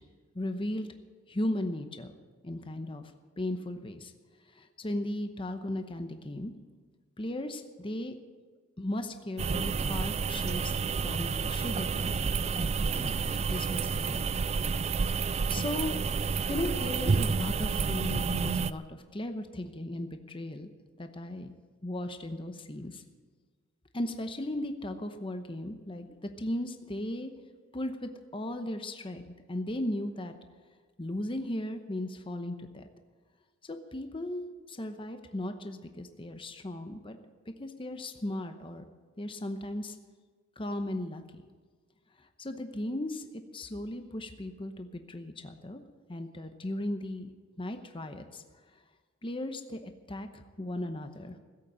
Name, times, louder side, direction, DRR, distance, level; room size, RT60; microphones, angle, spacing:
voice 1, 0.3-0.9 1.3-2.1 2.4-4.1 4.5-6.5 7.2-8.1 8.8-14.3 14.6-16.0 16.5-20.7 21.0-21.5 21.8-23.0 23.9-27.3 27.7-30.3 31.0-32.9 33.6-37.2 37.6-38.8 39.2-40.0 40.6-41.4 42.2-43.2 43.5-45.8 46.1-47.3 47.6-48.4 49.2-51.4, left 1 dB, 25° left, 7 dB, 0.9 m, -37 dB
sound 1, 9.4-18.7, right 5 dB, 30° right, 0.4 m, -30 dB
16.0 x 8.3 x 8.8 m, 1.5 s
head